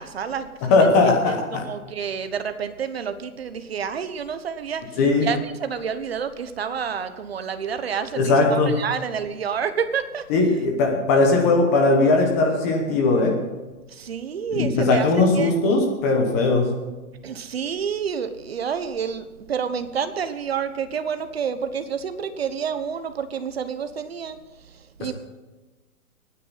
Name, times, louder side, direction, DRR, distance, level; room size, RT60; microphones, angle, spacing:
voice 1, 0.0-0.9 1.3-10.2 13.9-15.1 15.3-16.0 17.2-24.4 25.0-25.1, right 7 dB, 45° right, 10 dB, 1.2 m, -29 dB
voice 2, 0.6-1.6 5.0-5.3 8.1-8.8 10.3-13.4 14.5-16.7, left 3 dB, 10° left, 2 dB, 1.0 m, -19 dB
23.5 x 9.6 x 4.1 m, 1.2 s
hypercardioid pair, 170°, 44 cm